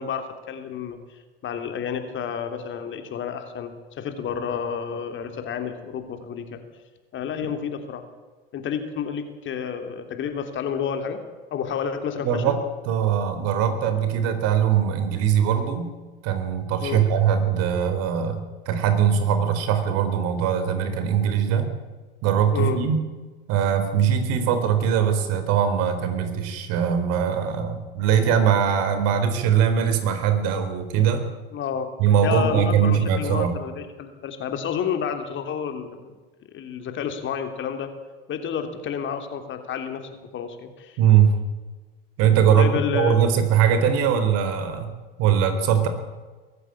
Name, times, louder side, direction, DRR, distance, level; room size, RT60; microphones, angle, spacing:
voice 1, 0.0-6.6 7.1-8.0 8.5-11.2 11.5-12.6 16.8-17.1 22.5-22.8 31.5-31.9 32.2-36.1 36.5-37.9 38.3-41.0 42.5-43.2, left 7 dB, 40° left, 7 dB, 3.3 m, -30 dB
voice 2, 12.2-12.5 12.9-15.9 16.2-21.7 22.2-23.0 23.5-31.3 32.0-33.5 41.0-41.3 42.2-44.9 45.2-45.9, right 8 dB, 55° right, 8 dB, 4.2 m, -21 dB
22.5 x 15.0 x 8.7 m, 1.3 s
hypercardioid pair, 85°, 30 cm